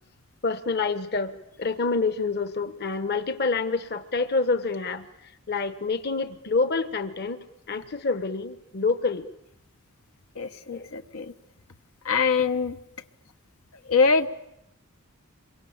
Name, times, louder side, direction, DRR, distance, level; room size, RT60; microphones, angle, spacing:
voice 1, 0.4-9.3 10.7-10.9, left 4 dB, 50° left, 11 dB, 1.1 m, -27 dB
voice 2, 10.3-11.3 12.0-12.8 13.8-14.3, left 5 dB, 85° left, 7 dB, 1.3 m, -23 dB
27.5 x 23.0 x 8.8 m, 0.81 s
head